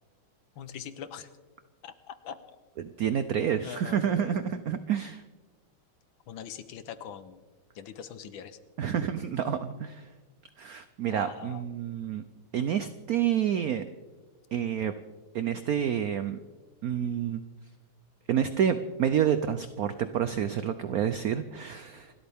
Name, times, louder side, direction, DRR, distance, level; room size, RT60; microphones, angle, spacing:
voice 1, 0.6-1.3 1.8-2.4 3.6-4.3 6.3-7.4 7.7-8.6 11.1-11.6, left 8 dB, 70° left, 12 dB, 1.6 m, -42 dB
voice 2, 2.8-5.2 8.8-10.1 10.6-12.2 12.5-13.8 14.5-14.9 15.3-16.4 16.8-17.4 18.3-22.1, right 9 dB, 80° right, 11 dB, 0.8 m, -29 dB
28.0 x 13.0 x 3.5 m, 1.3 s
omnidirectional pair, 2.3 m